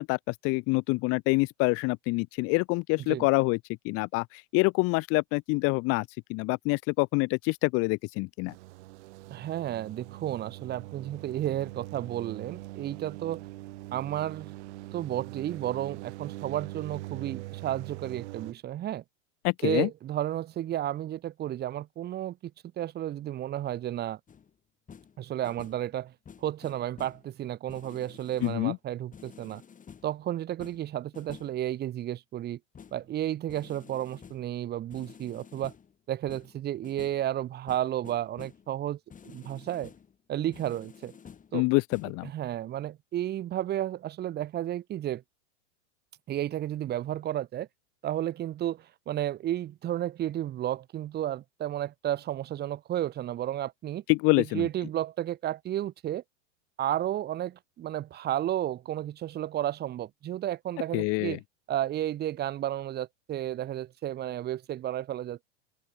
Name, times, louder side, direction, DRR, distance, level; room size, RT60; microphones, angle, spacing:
voice 1, 0.0-3.6 3.8-8.5 19.4-19.9 28.4-28.8 41.5-42.3 54.1-54.7 60.9-61.4, left 26 dB, 40° left, 0.7 m, -26 dB
sound 1, 8.5-18.5, right 19 dB, 65° right, 2.1 m, -42 dB
voice 2, 9.3-13.5 13.9-14.5 14.9-19.0 19.6-22.5 22.8-24.2 25.2-26.1 26.4-29.6 30.0-32.6 32.9-35.7 36.1-39.9 40.3-41.1 41.5-41.7 42.2-45.2 46.3-47.7 48.0-54.0 54.4-56.2 56.8-61.4 61.7-65.4, right 12 dB, 25° right, 1.1 m, -32 dB
sound 2, 24.3-24.5 24.9-25.2 25.4-25.9 26.3-27.3 27.7-28.7 29.1-30.2 30.6-31.6 32.7-33.1 33.5-34.5 34.9-36.0 36.3-37.3 37.7-38.7 39.1-40.1 40.5-41.6 41.9-42.1, left 7 dB, 20° left, 7.4 m, -50 dB
open air
hypercardioid pair, 125°, 37 cm